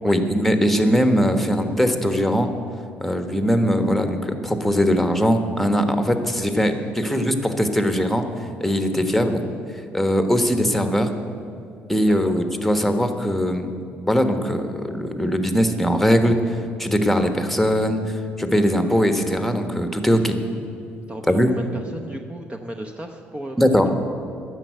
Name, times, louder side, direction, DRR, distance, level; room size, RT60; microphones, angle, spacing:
voice 1, 0.0-2.5 3.0-8.2 8.6-9.4 9.9-11.1 11.9-13.7 14.1-20.4 21.3-21.5 23.6-23.9, equal, 5° left, 7 dB, 1.3 m, -20 dB
voice 2, 9.0-9.4 12.0-12.4 21.1-23.6, right 1 dB, 20° right, 4 dB, 0.9 m, -35 dB
10.5 x 7.3 x 9.1 m, 2.5 s
hypercardioid pair, 55°, 5 cm